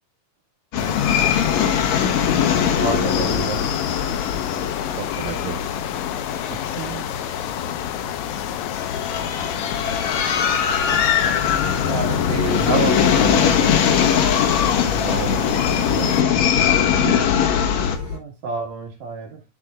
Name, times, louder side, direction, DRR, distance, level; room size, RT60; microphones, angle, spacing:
sound 1, 0.7-18.0, left 8 dB, 60° left, 2.4 m, -21 dB
sound 2, 0.8-16.2, left 14 dB, 80° left, 1.9 m, -31 dB
voice 1, 2.6-3.7 6.4-7.1 11.7-13.8 16.8-17.7 18.1-19.4, right 6 dB, 60° right, 3.0 m, -29 dB
voice 2, 4.9-5.7 14.3-14.5 15.0-16.2, right 6 dB, 80° right, 2.7 m, -32 dB
sound 3, 9.1-18.2, left 4 dB, 45° left, 5.4 m, -36 dB
12.0 x 5.8 x 2.4 m
omnidirectional pair, 3.7 m